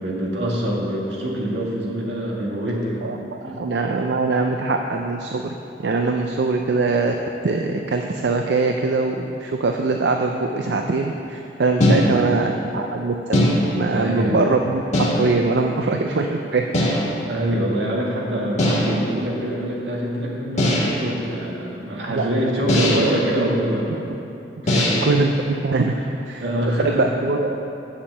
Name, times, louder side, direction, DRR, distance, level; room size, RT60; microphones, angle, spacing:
voice 1, 0.0-3.0 3.4-3.6 13.9-14.4 17.3-24.0 24.6-25.0 26.4-27.1, right 1 dB, 85° right, -3 dB, 1.9 m, -25 dB
voice 2, 3.0-5.5 5.8-7.1 7.4-13.5 13.7-14.8 15.2-16.6 22.1-23.0 23.9-24.0 24.6-27.7, right 3 dB, 70° right, 3 dB, 0.5 m, -22 dB
sound 1, 11.8-12.4 13.3-14.0 14.9-15.5 16.7-17.2 18.6-19.1 20.6-21.1 22.7-23.2 24.7-25.2, left 1 dB, 40° left, 1.5 m, -20 dB
7.2 x 7.1 x 7.5 m, 2.8 s
head